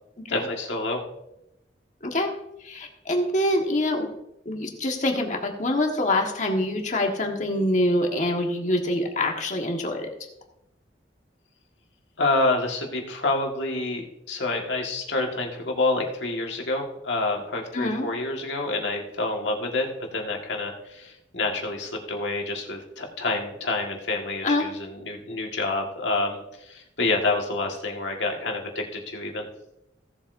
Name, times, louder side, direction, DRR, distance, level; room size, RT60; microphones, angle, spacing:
voice 1, 0.3-1.0 12.2-19.9 20.1-29.5, left 2 dB, 75° left, 1 dB, 1.8 m, -28 dB
voice 2, 2.0-2.3 2.6-4.1 4.4-10.1 17.7-18.1 24.4-24.7, left 1 dB, 40° left, 2 dB, 1.5 m, -25 dB
16.5 x 7.7 x 2.7 m, 0.85 s
head